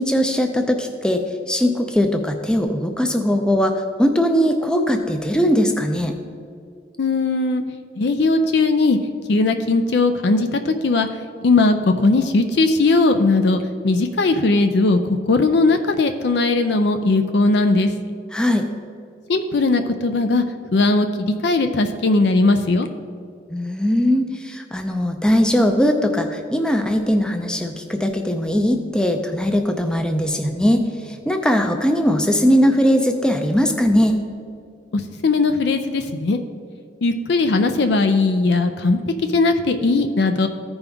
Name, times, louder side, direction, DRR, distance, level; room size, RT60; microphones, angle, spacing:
voice 1, 0.0-6.1 18.3-18.7 23.5-34.2, equal, 5° left, 5 dB, 0.4 m, -20 dB
voice 2, 7.0-7.6 8.0-9.0 9.3-11.1 11.4-17.9 19.3-20.4 20.7-22.9 34.9-36.4 37.0-39.0 39.3-40.5, left 3 dB, 60° left, 7 dB, 0.4 m, -18 dB
14.5 x 5.3 x 3.5 m, 2.3 s
head